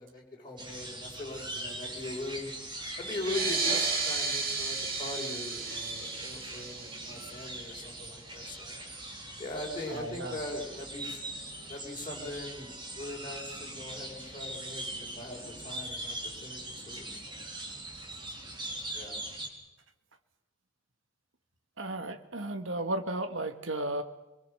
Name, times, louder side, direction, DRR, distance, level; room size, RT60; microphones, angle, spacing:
voice 1, 0.0-2.5 3.0-8.8 9.4-11.2 11.7-14.8 15.2-16.2 16.4-17.4 18.9-19.2, left 2 dB, 25° left, -4 dB, 5.5 m, -40 dB
sound 1, 0.6-19.5, right 1 dB, 25° right, 4.4 m, -41 dB
sound 2, 3.2-8.3, right 4 dB, 50° right, 4.1 m, -33 dB
voice 2, 9.8-10.4 21.8-24.0, right 1 dB, 70° right, 7 dB, 1.8 m, -34 dB
25.0 x 23.0 x 6.9 m, 1.0 s
head